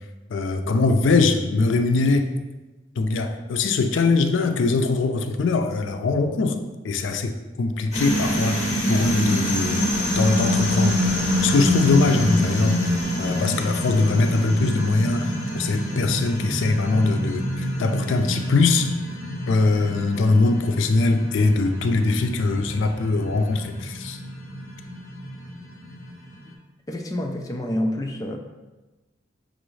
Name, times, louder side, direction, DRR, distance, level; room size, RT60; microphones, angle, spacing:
voice 1, 0.3-2.3 3.0-6.6 6.8-9.8 10.2-11.0 11.4-12.7 13.2-17.4 17.8-18.9 19.5-24.2, left 3 dB, 85° left, 7 dB, 0.4 m, -22 dB
sound 1, 7.9-26.4, equal, 35° left, 1.3 m, -26 dB
voice 2, 26.9-28.4, left 1 dB, 20° left, 2 dB, 0.3 m, -27 dB
6.1 x 2.5 x 3.1 m, 1.1 s
head